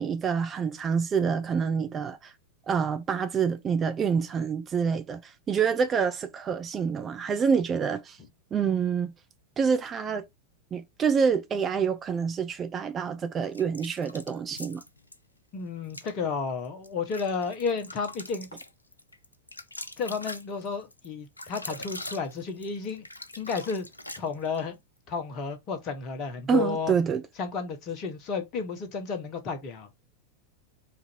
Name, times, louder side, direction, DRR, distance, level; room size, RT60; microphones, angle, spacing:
voice 1, 0.0-2.3 2.7-8.2 8.5-9.1 9.6-10.2 10.7-14.8 26.5-27.2, right 6 dB, 25° right, 0.5 m, -27 dB
sound 1, 13.5-15.2 15.8-16.1 16.6-24.7, left 1 dB, 85° left, 0.4 m, -42 dB
voice 2, 15.5-18.5 20.0-23.0 23.3-23.9 24.2-24.8 25.1-26.9 27.4-29.9, left 5 dB, 35° left, 1.0 m, -32 dB
4.2 x 2.6 x 4.3 m
figure-of-eight pair, 90°, 0 cm